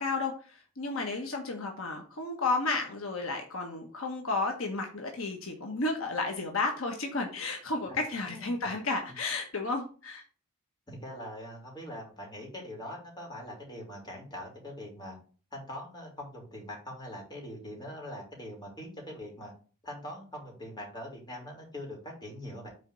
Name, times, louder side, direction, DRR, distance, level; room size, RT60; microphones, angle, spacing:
voice 1, 0.0-10.2, left 3 dB, 65° left, 2 dB, 1.3 m, -32 dB
voice 2, 10.9-15.2 15.5-19.5 19.8-22.7, left 1 dB, 20° left, -1 dB, 3.3 m, -42 dB
6.5 x 4.4 x 6.2 m, 0.37 s
head